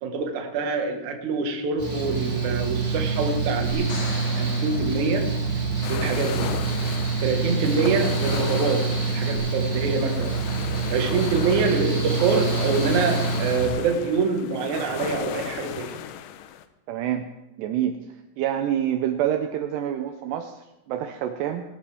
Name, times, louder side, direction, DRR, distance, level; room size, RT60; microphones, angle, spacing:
voice 1, 0.0-4.1 4.4-5.3 5.9-6.5 7.2-10.4 10.9-16.0, right 4 dB, 60° right, 4 dB, 2.0 m, -25 dB
Mechanical fan, 1.8-13.7, right 4 dB, 20° right, 2.0 m, -26 dB
sound 1, 3.7-6.0 9.3-9.4, left 3 dB, 45° left, 3.1 m, -40 dB
sound 2, 5.8-16.6, left 10 dB, 80° left, 2.4 m, -35 dB
voice 2, 16.9-17.3 17.6-18.0 18.4-21.6, right 10 dB, 85° right, 7 dB, 2.4 m, -27 dB
20.5 x 12.5 x 3.5 m, 1.0 s
omnidirectional pair, 5.7 m